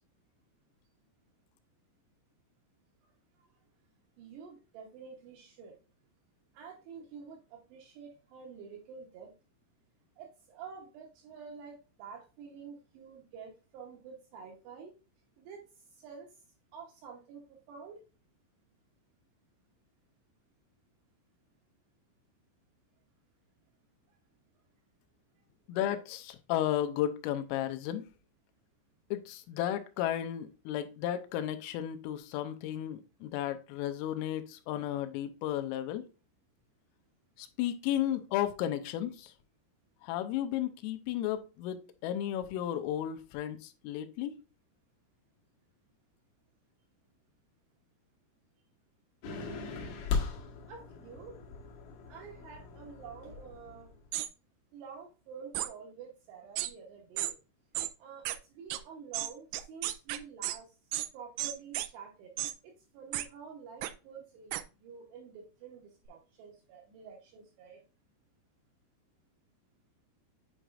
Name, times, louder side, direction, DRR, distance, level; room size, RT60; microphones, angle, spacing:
voice 1, 4.2-5.8 6.5-9.3 10.2-14.9 15.4-16.3 16.7-18.0 50.7-51.3 52.1-53.9 54.7-57.3 58.0-60.8 61.1-62.3 62.6-67.8, right 6 dB, 75° right, 2.6 m, -49 dB
voice 2, 25.7-28.0 29.1-36.0 37.4-39.3 40.0-44.3, left 11 dB, 85° left, 3.2 m, -34 dB
sound 1, 49.2-54.1, left 5 dB, 65° left, 2.5 m, -38 dB
sound 2, 54.1-54.3 55.5-55.7 56.6-56.7 57.2-57.3 57.7-57.9 58.3-58.4 58.7-58.8 59.1-60.6 60.9-61.1 61.4-61.9 62.4-62.5 63.1-63.3 63.8-63.9 64.5-64.6, right 15 dB, 90° right, 2.6 m, -33 dB
8.9 x 4.8 x 2.4 m
omnidirectional pair, 5.9 m